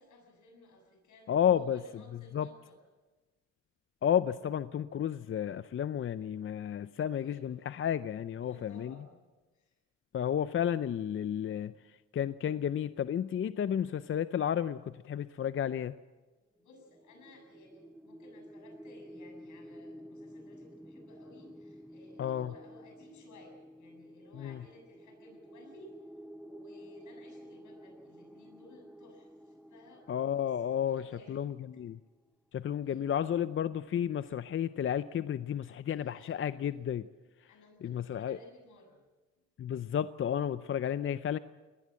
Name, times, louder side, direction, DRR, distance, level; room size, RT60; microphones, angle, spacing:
voice 1, 0.0-2.8 7.0-7.6 8.4-9.2 9.5-9.8 16.6-26.0 26.4-31.4 32.8-33.1 35.8-36.7 37.5-39.0, left 2 dB, 75° left, 4 dB, 7.3 m, -58 dB
voice 2, 1.3-1.8 2.3-2.5 4.0-8.9 10.1-16.0 22.2-22.5 24.3-24.6 30.1-32.0 32.5-37.1 37.8-38.4 39.6-41.4, left 9 dB, 45° left, 14 dB, 0.6 m, -32 dB
sound 1, 16.7-31.8, equal, 5° right, 0.6 m, -51 dB
22.5 x 19.0 x 7.6 m, 1.2 s
cardioid pair, 90°, 30 cm